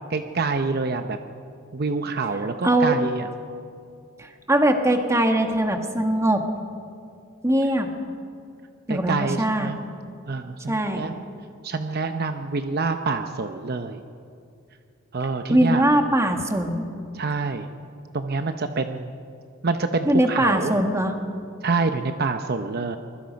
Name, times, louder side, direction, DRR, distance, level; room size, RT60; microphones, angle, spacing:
voice 1, 0.1-1.2 1.7-3.3 8.9-9.8 10.3-11.1 11.6-14.0 15.1-15.8 17.1-17.7 18.1-19.1 19.6-20.9 21.6-23.0, right 4 dB, 50° right, 7 dB, 0.8 m, -26 dB
voice 2, 2.6-3.0 4.2-6.4 7.4-7.9 8.9-9.7 10.7-11.0 15.5-16.8 20.0-21.1, right 1 dB, 15° right, 4 dB, 1.6 m, -21 dB
24.5 x 22.0 x 5.3 m, 2.4 s
head